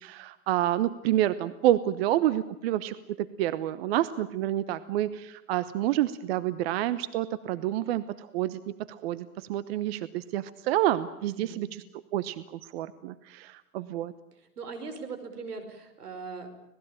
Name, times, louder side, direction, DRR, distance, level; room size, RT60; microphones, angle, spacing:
voice 1, 0.0-11.8 12.1-14.1, right 13 dB, 40° right, 15 dB, 0.9 m, -28 dB
voice 2, 11.2-11.7 14.4-16.5, right 4 dB, 80° right, 8 dB, 5.3 m, -40 dB
25.5 x 19.0 x 8.9 m, 0.90 s
hypercardioid pair, 135°, 45 cm